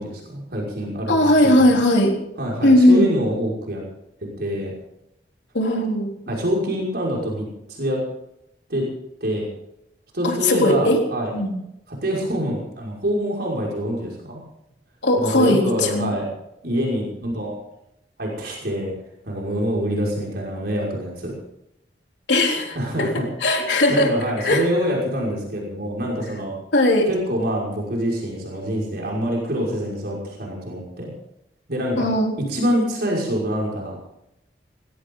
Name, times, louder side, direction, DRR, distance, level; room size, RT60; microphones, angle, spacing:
voice 1, 0.0-1.8 2.4-3.8 4.4-4.7 6.3-8.0 8.7-8.8 9.2-9.5 10.1-11.3 11.9-14.4 15.2-16.3 16.6-17.5 18.2-18.9 19.2-21.4 22.8-23.2 23.9-26.5 27.1-31.1 31.7-32.1 32.5-34.1, equal, 65° right, -3 dB, 5.8 m, -25 dB
voice 2, 1.1-2.1 2.6-3.1 5.5-6.1 10.2-11.0 11.3-11.5 15.0-16.1 22.3-22.8 23.4-24.1 24.4-24.6 26.7-27.1 32.0-32.3, left 1 dB, 80° left, 1 dB, 3.6 m, -17 dB
20.5 x 16.5 x 4.0 m, 0.81 s
head